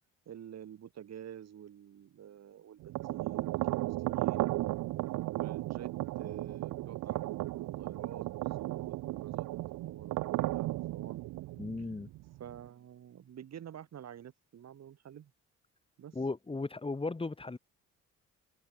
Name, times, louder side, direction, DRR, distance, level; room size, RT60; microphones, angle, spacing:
voice 1, 0.3-4.9 5.4-5.9 6.2-9.5 9.8-11.2 12.4-15.3 16.0-16.2, right 9 dB, 60° right, 2.8 m, -48 dB
sound 1, 2.8-12.6, right 18 dB, 90° right, 0.9 m, -35 dB
voice 2, 11.6-12.1 16.1-17.6, left 3 dB, 20° left, 2.5 m, -36 dB
cardioid pair, 90°, 30 cm